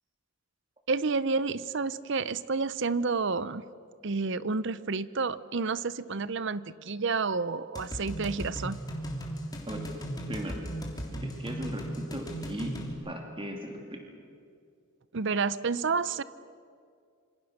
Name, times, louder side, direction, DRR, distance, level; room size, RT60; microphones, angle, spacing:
voice 1, 0.9-3.6 4.0-8.8 15.1-16.2, right 4 dB, 60° right, 16 dB, 0.7 m, -30 dB
sound 1, 7.7-12.9, right 1 dB, 20° left, 3.2 m, -37 dB
voice 2, 10.3-10.6 11.1-12.7 13.0-14.0, equal, 25° right, 2 dB, 2.8 m, -38 dB
27.0 x 25.5 x 6.6 m, 2.3 s
head